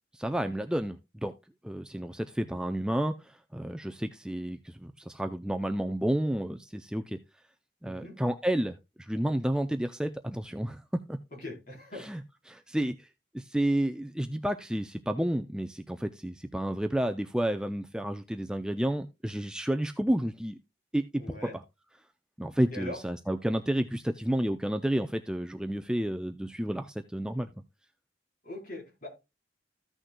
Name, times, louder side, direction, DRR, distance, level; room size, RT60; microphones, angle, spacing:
voice 1, 0.1-1.3 1.6-7.2 7.8-11.2 12.0-12.2 12.5-13.1 13.3-20.6 20.9-21.4 22.4-27.5, right 1 dB, 5° right, 0.4 m, -31 dB
voice 2, 7.8-8.2 11.3-12.0 21.2-21.6 22.7-23.0 28.4-29.1, left 1 dB, 45° left, 3.8 m, -41 dB
15.0 x 6.3 x 2.2 m
head